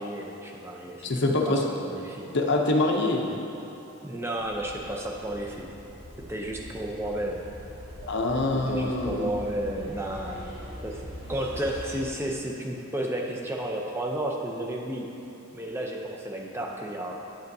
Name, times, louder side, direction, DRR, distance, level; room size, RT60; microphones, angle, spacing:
voice 1, 0.0-1.1 1.4-2.3 4.0-5.7 6.2-7.4 8.5-10.5 10.8-15.1 15.5-17.4, right 1 dB, 10° right, 0 dB, 0.5 m, -32 dB
voice 2, 1.0-1.6 2.3-3.2 8.1-9.3, left 2 dB, 50° left, 1 dB, 0.6 m, -25 dB
sound 1, 4.4-12.1, equal, 50° right, 1.7 m, -42 dB
8.8 x 7.8 x 2.7 m, 2.8 s
head